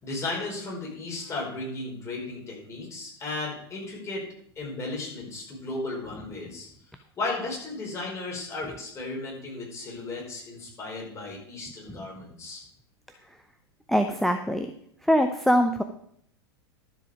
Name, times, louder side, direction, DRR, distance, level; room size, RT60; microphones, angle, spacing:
voice 1, 0.0-4.2 4.5-6.7 7.2-12.6, left 2 dB, 20° left, -2 dB, 4.9 m, -35 dB
voice 2, 13.9-14.7 15.0-15.8, equal, ahead, 7 dB, 0.6 m, -23 dB
12.0 x 7.5 x 4.9 m, 0.66 s
figure-of-eight pair, 90°, 14 cm